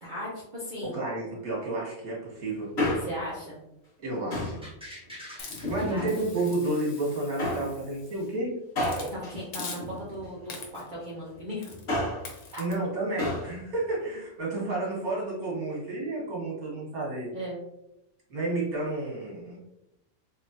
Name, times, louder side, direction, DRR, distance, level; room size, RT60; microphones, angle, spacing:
voice 1, 0.0-1.0 3.0-3.6 5.9-6.1 9.1-11.7 12.5-12.6 17.3-17.6, equal, 40° right, -7 dB, 0.8 m, -37 dB
voice 2, 0.8-2.7 4.0-4.6 5.7-8.5 12.6-17.3 18.3-19.6, right 2 dB, 80° right, -5 dB, 2.0 m, -31 dB
Male speech man speaking, 2.6-3.4 4.3-4.7 5.5-6.3 7.4-7.8 8.8-10.4 11.7-12.3 13.2-13.5 13.8-13.9, left 1 dB, 50° left, 1.5 m, -31 dB
sound 1, 4.6-7.5 7.9-8.0, equal, 5° right, 1.0 m, -47 dB
Hiss, 5.4-8.3 8.8-9.1 9.5-10.1 10.5-11.0 11.6-11.9 12.3-12.7, left 4 dB, 90° left, 1.3 m, -44 dB
3.7 x 3.1 x 2.6 m, 0.86 s
omnidirectional pair, 1.5 m